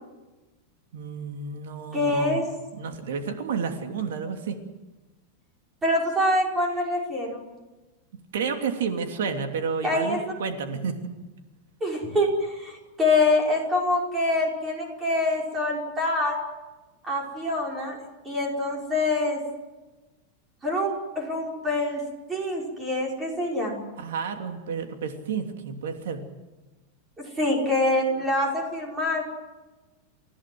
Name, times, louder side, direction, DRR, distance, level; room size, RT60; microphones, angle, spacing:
voice 1, 0.9-2.5 2.7-4.6 8.3-11.0 24.0-26.3, right 5 dB, 85° right, 5 dB, 3.0 m, -31 dB
voice 2, 1.9-2.5 5.8-7.4 9.8-10.2 11.8-16.4 17.0-18.0 18.2-19.4 20.6-22.0 22.3-23.8 27.2-29.2, left 2 dB, 10° right, -1 dB, 5.2 m, -25 dB
29.5 x 16.5 x 7.9 m, 1.2 s
supercardioid pair, 175°, 0 cm